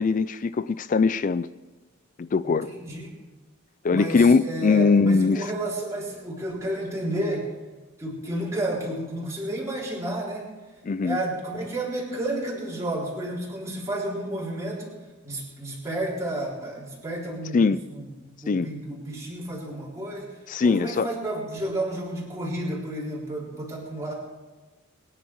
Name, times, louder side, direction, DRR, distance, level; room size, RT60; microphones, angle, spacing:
voice 1, 0.0-1.5 2.2-2.7 3.8-5.5 10.8-11.2 17.5-17.8 18.5-18.7 20.5-21.1, left 4 dB, 40° left, 0.4 m, -21 dB
voice 2, 2.4-3.1 3.9-7.5 8.0-10.5 11.0-15.0 15.2-18.1 18.4-20.3 20.6-24.1, right 1 dB, 15° right, 3.7 m, -31 dB
22.5 x 10.0 x 4.7 m
head